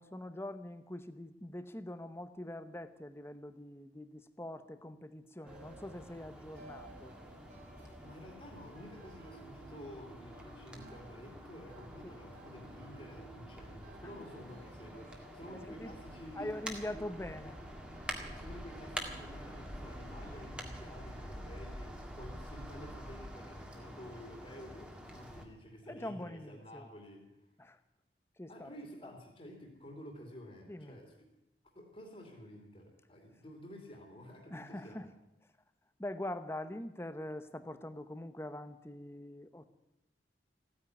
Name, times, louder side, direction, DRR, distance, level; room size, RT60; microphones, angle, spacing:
voice 1, 0.0-7.2 12.0-12.2 14.0-14.2 15.5-16.0 16.3-17.6 25.8-26.9 27.6-27.8 28.4-28.8 29.0-29.2 30.7-31.0 34.5-35.1 36.0-39.7, left 1 dB, 15° left, 11 dB, 0.9 m, -43 dB
sound 1, 5.4-21.1, right 1 dB, 55° right, 3.0 m, -57 dB
sound 2, 5.5-25.4, equal, 5° right, 1.8 m, -47 dB
voice 2, 8.0-16.5 16.9-17.1 18.2-27.4 28.5-31.3 31.7-35.1, equal, 35° left, 1 dB, 2.7 m, -51 dB
15.0 x 9.9 x 9.5 m, 0.90 s
head